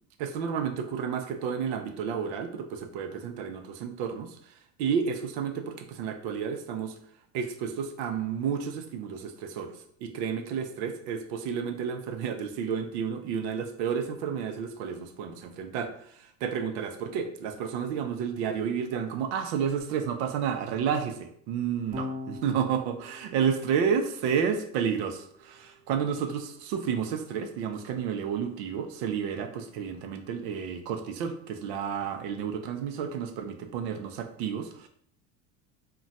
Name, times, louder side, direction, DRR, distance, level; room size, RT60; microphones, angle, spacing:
voice 1, 0.2-4.5 4.8-7.0 7.3-34.9, right 7 dB, 70° right, 7 dB, 0.6 m, -31 dB
Electric guitar / Bass guitar, 21.9-28.3, left 2 dB, 15° right, 0.7 m, -45 dB
2.4 x 2.2 x 4.0 m, 0.64 s
supercardioid pair, 125°, 35 cm